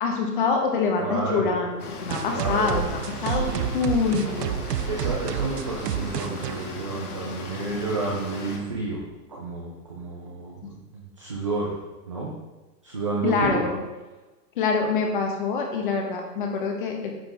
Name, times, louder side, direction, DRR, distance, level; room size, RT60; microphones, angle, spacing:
voice 1, 0.0-1.7 2.0-3.5 3.7-4.5 10.6-10.7 13.2-13.8 14.6-17.1, left 5 dB, 30° left, 2 dB, 1.4 m, -25 dB
voice 2, 1.0-1.5 2.3-2.7 3.2-3.7 4.9-9.0 9.3-11.8 12.1-12.3 12.8-13.7, right 3 dB, 20° right, -4 dB, 0.5 m, -30 dB
sound 1, 1.8-8.6, left 3 dB, 65° left, 2.2 m, -38 dB
sound 2, 2.1-7.5, right 9 dB, 75° right, 0.7 m, -30 dB
9.9 x 7.7 x 3.6 m, 1.2 s
hypercardioid pair, 180°, 48 cm